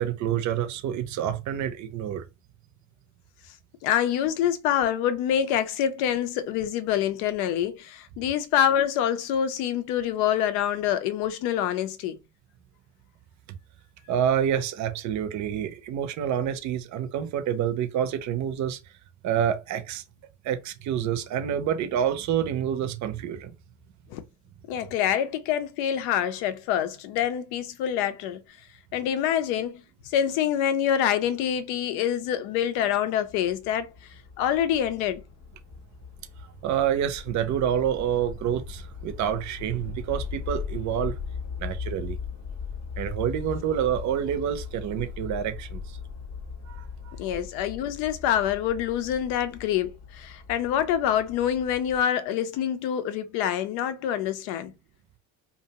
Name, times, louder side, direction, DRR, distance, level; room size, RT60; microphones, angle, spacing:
voice 1, 0.0-2.2 14.1-18.8 19.2-20.0 20.4-23.5 36.6-41.2 41.6-42.2 43.0-46.0 46.7-47.1, right 9 dB, 45° right, 0.6 m, -28 dB
voice 2, 3.8-12.2 24.1-24.2 24.7-28.4 28.9-29.8 30.1-33.9 34.4-35.2 47.2-54.7, left 10 dB, 65° left, 0.6 m, -26 dB
sound 1, 33.3-52.0, left 6 dB, 35° left, 0.8 m, -39 dB
2.5 x 2.1 x 2.8 m
hypercardioid pair, 80°, 41 cm